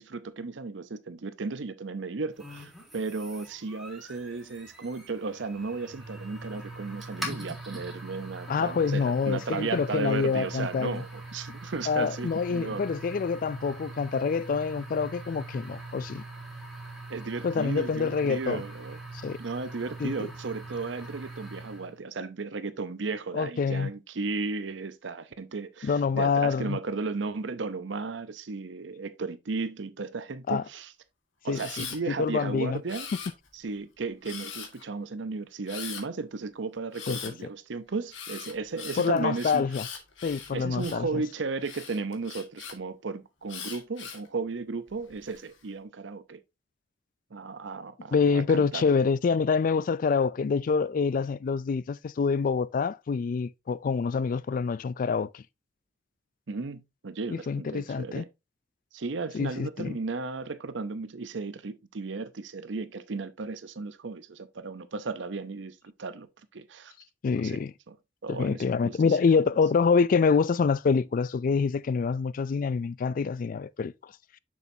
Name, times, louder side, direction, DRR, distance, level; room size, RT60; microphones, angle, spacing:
voice 1, 0.0-12.9 17.1-19.0 19.4-30.9 31.4-33.1 33.5-39.6 40.5-46.4 47.3-48.8 56.5-58.3 58.9-66.3 66.5-66.9 67.3-67.6 67.9-68.0 68.2-69.0, right 4 dB, 70° right, 0.7 m, -35 dB
sound 1, 2.4-22.0, right 2 dB, ahead, 2.8 m, -42 dB
voice 2, 8.5-11.0 11.9-16.2 17.4-18.6 19.2-19.4 20.0-20.1 23.3-23.9 25.8-26.8 30.5-30.6 31.5-31.9 32.2-32.8 37.1-37.3 39.0-39.9 40.2-41.2 48.1-55.4 57.3-58.2 59.3-60.0 67.2-67.7 68.3-73.9, left 5 dB, 45° left, 0.3 m, -26 dB
Camera, 31.5-32.0 32.9-33.6 34.2-34.8 35.7-36.0 36.9-37.3 38.1-41.1 41.6-42.7 43.5-44.3 44.9-45.4, left 7 dB, 85° left, 1.6 m, -40 dB
6.9 x 6.3 x 2.7 m
head